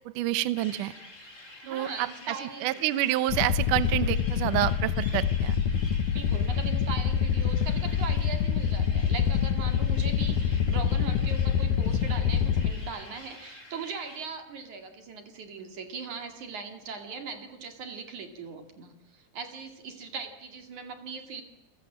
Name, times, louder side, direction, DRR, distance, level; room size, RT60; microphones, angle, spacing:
voice 1, 0.1-0.9 1.7-2.1 2.6-5.6, right 15 dB, 70° right, 14 dB, 2.1 m, -28 dB
sound 1, 0.5-14.2, left 2 dB, 20° left, 4.6 m, -49 dB
voice 2, 1.6-2.7 6.1-21.4, right 5 dB, 50° right, 5 dB, 3.4 m, -40 dB
sound 2, 3.3-12.7, left 8 dB, 65° left, 2.1 m, -26 dB
30.0 x 21.5 x 7.5 m, 0.99 s
omnidirectional pair, 4.8 m